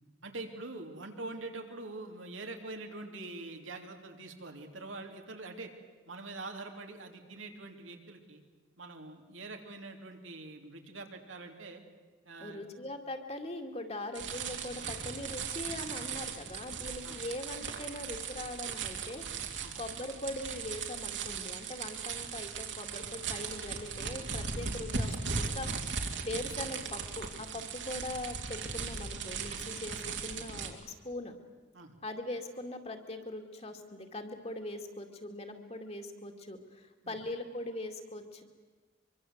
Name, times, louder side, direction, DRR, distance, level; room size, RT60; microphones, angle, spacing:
voice 1, 0.2-5.7 6.1-8.4 8.8-11.8 12.2-12.7 17.0-17.2 19.6-19.7 31.7-31.9 37.0-37.2, right 2 dB, 90° right, 3 dB, 3.3 m, -44 dB
voice 2, 12.4-19.2 19.8-31.3 32.0-38.4, left 1 dB, 35° left, 4 dB, 2.4 m, -41 dB
sound 1, 14.1-30.7, right 5 dB, 70° right, 2.9 m, -38 dB
24.5 x 24.0 x 8.1 m, 1.3 s
head